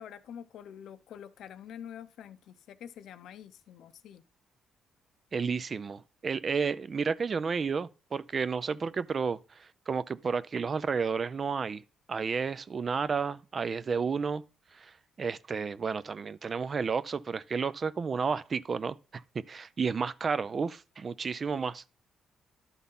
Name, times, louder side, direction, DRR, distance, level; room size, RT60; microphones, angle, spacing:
voice 1, 0.0-4.2, left 9 dB, 75° left, 0.7 m, -46 dB
voice 2, 5.3-11.8 12.1-14.4 14.7-14.9 15.2-19.2 19.5-21.9, right 5 dB, 40° right, 0.5 m, -31 dB
11.5 x 4.0 x 5.5 m
cardioid pair, 90°, 0 cm